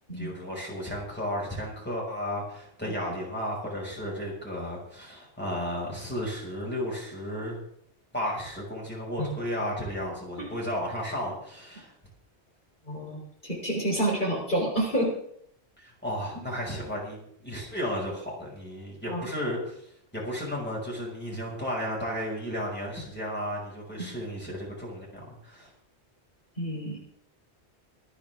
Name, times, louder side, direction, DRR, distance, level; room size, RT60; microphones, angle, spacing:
voice 1, 0.1-7.6 8.1-11.9 15.8-19.9 20.1-25.7, equal, 10° left, -4 dB, 5.9 m, -33 dB
voice 2, 12.9-15.1 19.1-19.2 24.0-24.1 26.6-27.0, right 1 dB, 45° left, -3 dB, 4.2 m, -29 dB
26.0 x 9.8 x 3.7 m, 0.68 s
omnidirectional pair, 1.1 m